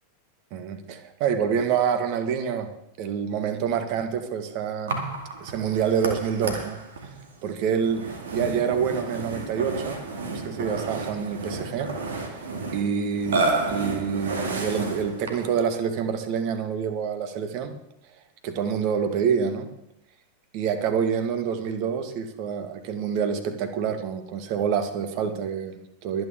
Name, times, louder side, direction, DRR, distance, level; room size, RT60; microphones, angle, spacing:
voice 1, 0.5-2.7 3.0-5.0 5.4-6.8 7.4-10.0 10.3-12.3 12.7-17.7 18.4-19.7 20.5-26.2, right 7 dB, 45° right, 9 dB, 1.6 m, -27 dB
Burping eructation, 4.9-15.6, right 3 dB, 60° right, 2.3 m, -31 dB
23.0 x 9.2 x 3.7 m, 0.79 s
figure-of-eight pair, 90°, 0 cm